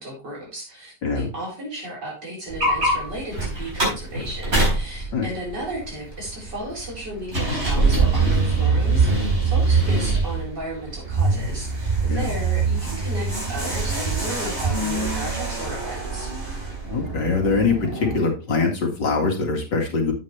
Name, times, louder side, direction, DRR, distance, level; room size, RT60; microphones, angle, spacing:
voice 1, 0.0-16.3, right 1 dB, 75° right, -3 dB, 5.0 m, -34 dB
voice 2, 1.0-1.3 5.1-5.3 12.1-12.3 16.9-20.1, left 4 dB, 85° left, 1 dB, 2.7 m, -23 dB
sound 1, 2.5-18.2, right 3 dB, 40° right, 4.7 m, -23 dB
8.5 x 8.1 x 3.2 m, 0.31 s
omnidirectional pair, 1.9 m